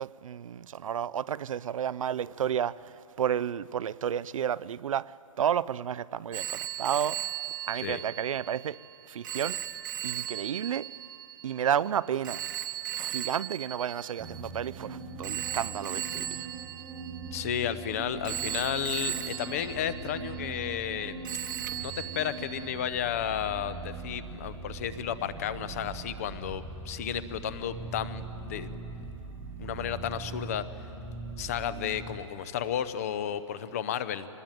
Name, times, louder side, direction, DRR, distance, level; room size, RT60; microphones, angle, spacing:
voice 1, 0.0-7.3 7.7-8.8 9.1-9.6 10.0-10.9 11.4-12.4 12.9-16.5, right 9 dB, 75° right, 0.5 m, -31 dB
Telephone, 6.3-14.7 15.2-17.8 18.2-21.0 21.2-23.0, right 11 dB, 35° right, 1.0 m, -37 dB
sound 1, 14.2-32.2, right 4 dB, 10° right, 0.9 m, -41 dB
voice 2, 17.3-21.2 21.8-28.8 29.6-30.7 31.4-34.3, left 9 dB, 30° left, 0.7 m, -33 dB
24.0 x 19.5 x 9.1 m
hypercardioid pair, 170°, 17 cm